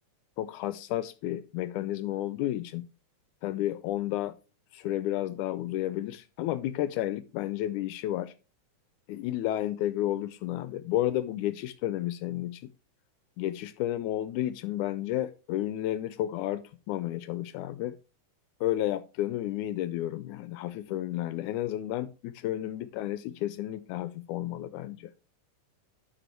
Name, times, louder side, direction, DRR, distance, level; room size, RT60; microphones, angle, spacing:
voice 1, 0.4-2.9 3.4-4.4 4.7-8.3 9.1-12.7 13.4-18.0 18.6-25.1, left 13 dB, 80° left, 2.0 m, -32 dB
12.0 x 4.8 x 4.4 m
omnidirectional pair, 3.5 m